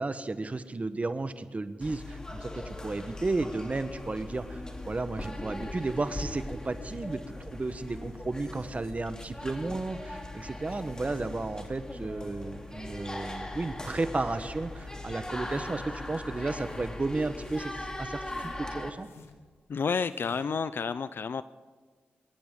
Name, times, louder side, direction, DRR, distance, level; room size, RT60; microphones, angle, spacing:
voice 1, 0.0-19.1, right 3 dB, 35° right, 11 dB, 1.1 m, -33 dB
sound 1, 1.8-18.9, left 1 dB, 20° left, 2.5 m, -40 dB
sound 2, 15.4-15.9 16.3-16.9 17.3-17.8 18.2-19.5 19.9-20.6, left 4 dB, 85° left, 1.5 m, -53 dB
voice 2, 19.7-21.4, left 5 dB, 60° left, 15 dB, 0.5 m, -30 dB
24.5 x 14.0 x 3.7 m, 1.5 s
cardioid pair, 50°, 4 cm